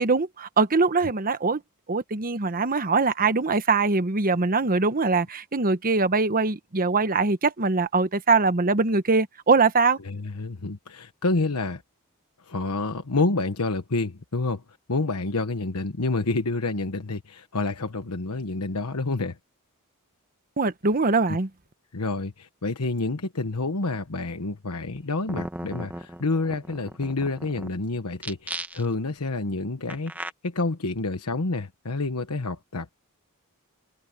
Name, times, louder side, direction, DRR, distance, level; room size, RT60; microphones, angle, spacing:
voice 1, 0.0-1.6 1.9-10.0 20.6-21.5, right 4 dB, 40° right, 1.1 m, -22 dB
voice 2, 10.0-11.8 12.4-14.6 14.9-19.4 21.3-21.4 21.9-32.9, left 3 dB, 85° left, 1.2 m, -28 dB
sound 1, 25.0-25.1 25.3-27.7 28.2-29.1 29.9-30.3, right 1 dB, 10° right, 1.1 m, -36 dB
head